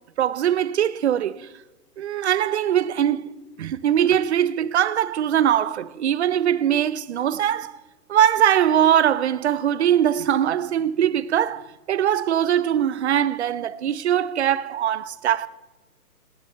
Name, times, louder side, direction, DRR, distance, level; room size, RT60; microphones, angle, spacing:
voice 1, 0.2-1.5 2.0-3.3 3.6-7.8 8.1-15.5, right 10 dB, 45° right, 0.7 m, -21 dB
19.0 x 16.5 x 4.4 m
hypercardioid pair, 155°, 48 cm